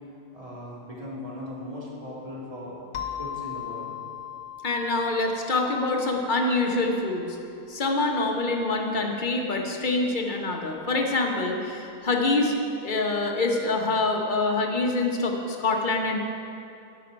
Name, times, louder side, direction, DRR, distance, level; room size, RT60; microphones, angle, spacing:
voice 1, 0.3-2.8 3.2-4.0, left 1 dB, 30° right, -7 dB, 2.4 m, -38 dB
sound 1, 2.9-7.3, left 10 dB, 80° left, 1.2 m, -39 dB
voice 2, 4.6-7.4 7.7-12.5 12.8-16.2, left 2 dB, 45° left, 2 dB, 1.0 m, -25 dB
13.0 x 6.0 x 5.1 m, 2.6 s
omnidirectional pair, 1.2 m